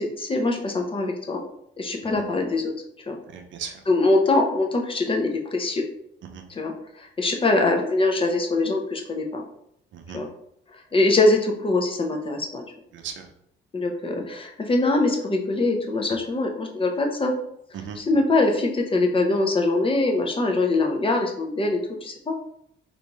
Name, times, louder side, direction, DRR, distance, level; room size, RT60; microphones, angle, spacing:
voice 1, 0.0-1.4 1.8-2.7 3.1-3.2 3.9-5.8 6.5-9.4 10.1-10.3 10.9-12.6 13.7-17.3 18.0-22.3, left 2 dB, 25° left, 2 dB, 0.6 m, -23 dB
voice 2, 3.3-3.7 6.2-6.4 9.9-10.2 12.9-13.3 17.7-18.0, right 7 dB, 70° right, 4 dB, 0.6 m, -37 dB
3.4 x 2.6 x 3.0 m, 0.73 s
cardioid pair, 90°, 20 cm